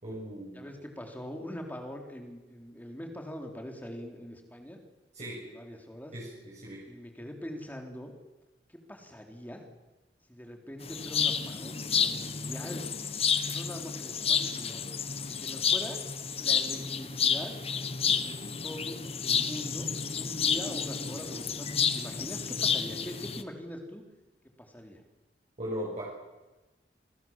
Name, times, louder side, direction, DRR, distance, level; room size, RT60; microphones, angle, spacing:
voice 1, 0.0-0.7 5.1-5.4 6.1-6.8 25.6-26.0, equal, 40° right, -6 dB, 7.0 m, -38 dB
voice 2, 0.5-4.8 5.4-6.1 6.9-8.1 8.7-9.6 10.3-12.8 13.5-14.8 15.3-16.0 16.4-17.5 18.2-19.9 20.1-21.7 21.9-24.1 24.6-25.0, equal, 10° left, 3 dB, 3.9 m, -42 dB
sound 1, 10.8-23.4, left 6 dB, 35° left, 1.3 m, -30 dB
28.5 x 20.5 x 7.5 m, 1.1 s
head